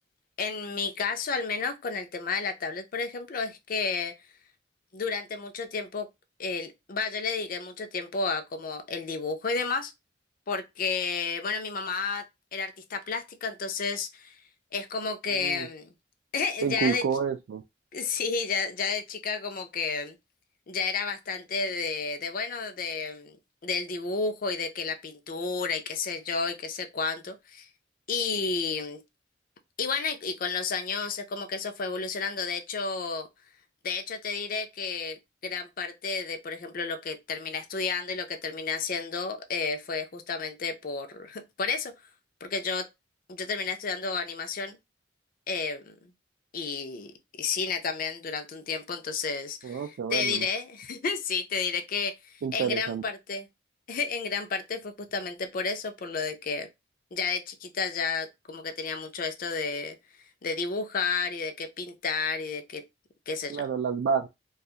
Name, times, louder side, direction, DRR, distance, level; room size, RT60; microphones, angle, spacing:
voice 1, 0.4-4.1 4.9-6.1 6.4-9.9 10.5-12.2 12.5-14.4 14.7-15.9 16.3-17.0 17.9-20.1 20.7-23.4 23.6-27.7 28.1-29.0 29.8-33.3 33.8-35.2 35.4-41.9 42.4-42.9 43.3-44.8 45.5-45.9 46.5-47.1 47.4-49.8 50.1-53.5 53.9-56.7 57.1-60.0 60.4-62.8 63.3-63.6, left 4 dB, 50° left, 0.5 m, -31 dB
voice 2, 15.3-15.7 16.6-17.6 49.6-50.4 52.4-53.0 63.5-64.3, right 6 dB, 70° right, 0.3 m, -29 dB
2.8 x 2.3 x 2.3 m
head